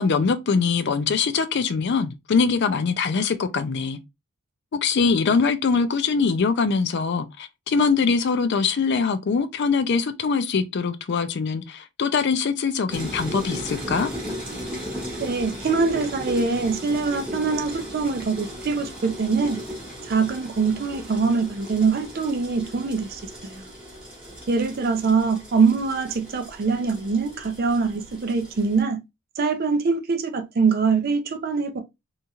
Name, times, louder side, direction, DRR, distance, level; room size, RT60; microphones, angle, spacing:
voice 1, 0.0-4.0 4.7-14.1, left 5 dB, 50° left, 0.4 m, -23 dB
sound 1, 12.9-28.8, equal, 5° right, 1.2 m, -36 dB
voice 2, 15.2-19.6 20.0-23.7 24.5-29.0 29.4-31.8, right 4 dB, 45° right, 0.4 m, -23 dB
2.9 x 2.8 x 2.3 m
head